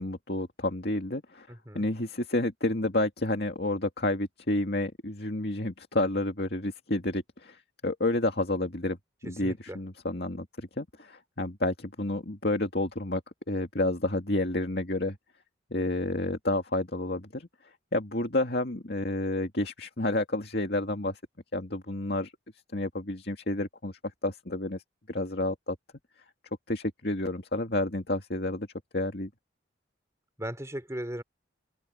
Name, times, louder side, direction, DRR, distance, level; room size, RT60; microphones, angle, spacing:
voice 1, 0.0-1.5 1.7-9.0 9.2-13.2 13.5-15.2 15.7-17.5 17.9-21.2 21.5-22.3 22.7-23.9 24.2-24.8 25.1-25.8 26.7-28.7 28.9-29.3, left 1 dB, 55° left, 2.4 m, -30 dB
voice 2, 1.5-1.9 9.4-9.8 30.4-31.2, right 1 dB, 15° right, 3.4 m, -37 dB
open air
head